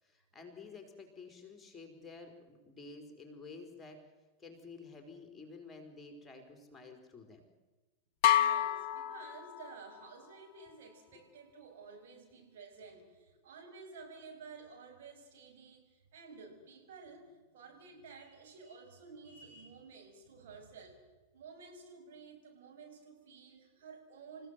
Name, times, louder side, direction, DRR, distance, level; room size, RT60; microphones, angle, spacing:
voice 1, 0.0-4.0 4.4-7.4, left 4 dB, 10° left, 5 dB, 4.4 m, -51 dB
sound 1, 8.2-10.0, left 11 dB, 45° left, 1.0 m, -29 dB
voice 2, 8.3-21.0 21.3-24.5, right 4 dB, 55° right, 2 dB, 6.6 m, -53 dB
29.0 x 16.0 x 7.7 m, 1.2 s
figure-of-eight pair, 90°, 0 cm